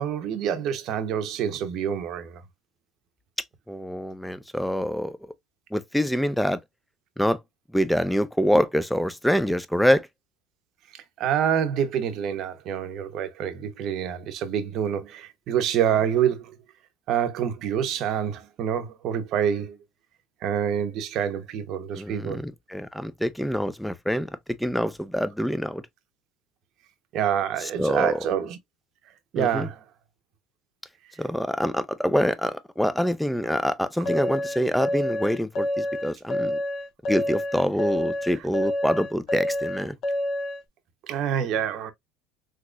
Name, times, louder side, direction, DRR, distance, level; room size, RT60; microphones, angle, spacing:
voice 1, 0.0-2.4 10.9-16.6 17.1-19.8 20.4-22.4 27.1-28.6 29.3-29.8 41.0-41.9, right 9 dB, 55° right, 0.7 m, -27 dB
voice 2, 3.7-5.2 5.7-6.6 7.2-7.4 7.7-10.1 21.9-25.8 27.8-28.2 29.4-29.7 31.2-36.6 37.1-40.0, equal, ahead, 0.4 m, -25 dB
sound 1, 34.0-40.6, left 1 dB, 50° left, 1.1 m, -28 dB
3.8 x 2.9 x 2.2 m
supercardioid pair, 95°, 0 cm